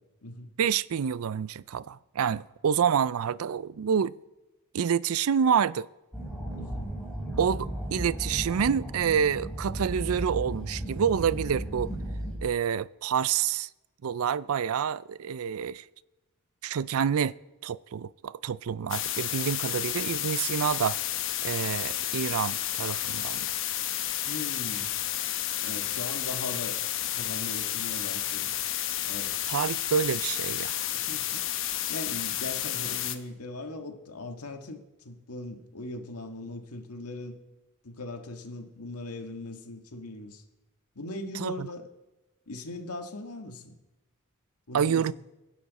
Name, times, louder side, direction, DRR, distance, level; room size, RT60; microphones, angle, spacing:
voice 1, 0.6-4.1 4.7-5.9 7.4-11.9 12.4-13.7 14.0-15.8 16.6-17.4 17.6-21.0 21.4-23.5 29.5-30.8 41.4-41.7 44.7-45.1, right 7 dB, 75° right, 0.4 m, -28 dB
sound 1, 6.1-12.4, right 1 dB, 5° left, 3.5 m, -35 dB
voice 2, 6.6-6.9 24.2-24.9 25.6-28.5 29.0-29.4 30.9-31.4 31.9-37.4 37.8-40.4 40.9-41.9 42.5-43.8 44.7-45.1, left 2 dB, 90° left, 1.7 m, -39 dB
sound 2, 18.9-33.2, left 12 dB, 60° left, 0.9 m, -31 dB
23.5 x 10.0 x 4.1 m
head